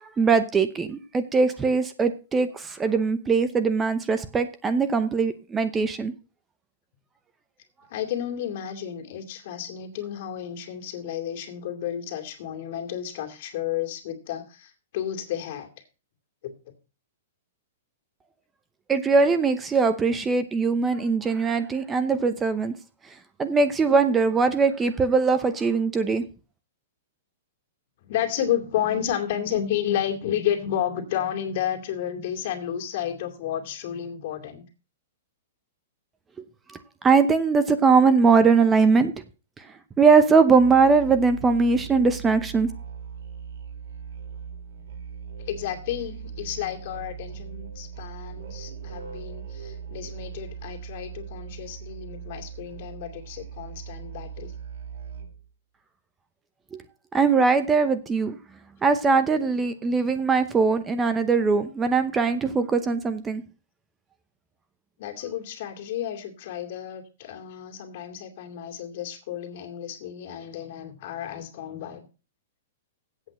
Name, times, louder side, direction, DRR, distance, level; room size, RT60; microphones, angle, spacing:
voice 1, 0.0-6.1 18.9-22.7 23.4-26.2 37.0-39.1 40.0-42.7 56.7-56.8 57.1-58.4 58.8-63.4, right 4 dB, 15° right, 11 dB, 0.8 m, -21 dB
voice 2, 7.9-15.7 16.4-16.5 28.0-34.6 45.5-54.5 65.0-72.1, left 10 dB, 55° left, 4 dB, 2.5 m, -31 dB
Musical instrument, 40.5-55.5, right 7 dB, 70° right, 2.5 m, -39 dB
8.2 x 6.0 x 7.8 m, 0.32 s
hypercardioid pair, 140°, 0 cm